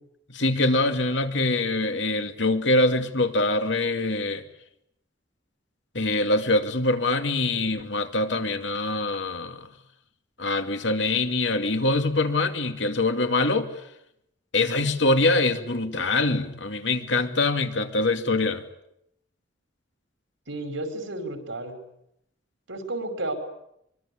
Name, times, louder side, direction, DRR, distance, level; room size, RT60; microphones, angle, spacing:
voice 1, 0.3-4.4 5.9-9.7 10.4-13.7 14.5-18.6, left 2 dB, 70° left, 6 dB, 2.5 m, -24 dB
voice 2, 20.5-21.8 22.7-23.3, right 2 dB, 85° right, 7 dB, 5.3 m, -32 dB
24.0 x 23.5 x 8.8 m, 0.78 s
head